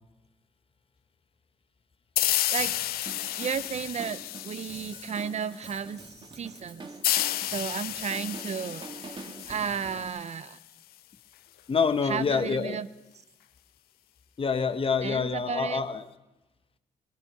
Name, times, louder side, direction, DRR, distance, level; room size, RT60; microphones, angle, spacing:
sound 1, 2.2-5.5 7.0-10.5, left 14 dB, 80° left, 0.5 m, -31 dB
Drum kit, 2.6-10.1, right 3 dB, 30° right, 1.5 m, -46 dB
voice 1, 3.4-6.0 6.4-6.9 7.5-8.9 9.1-10.6 12.1-12.9 15.0-15.8, right 7 dB, 45° right, 15 dB, 0.6 m, -33 dB
voice 2, 11.7-12.8 14.4-16.1, left 5 dB, 35° left, 10 dB, 1.1 m, -26 dB
15.5 x 14.5 x 5.4 m, 1.0 s
cardioid pair, 85°, 16 cm